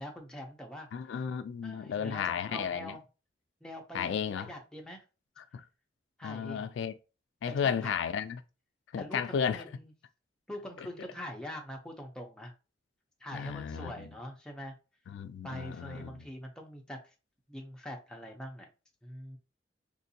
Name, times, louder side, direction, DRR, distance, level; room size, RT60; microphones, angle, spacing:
voice 1, 0.0-0.9 1.6-3.0 3.6-5.0 6.2-6.7 7.5-7.9 9.0-9.9 10.5-12.5 13.2-14.7 15.4-17.1 17.5-18.7 19.0-19.4, equal, 5° left, 0.6 m, -44 dB
voice 2, 0.9-2.9 3.9-4.5 5.4-5.6 6.2-6.9 7.4-8.4 8.9-9.6 10.8-10.9 13.3-14.1 15.1-16.3, left 7 dB, 75° left, 0.3 m, -34 dB
3.6 x 2.5 x 2.7 m
head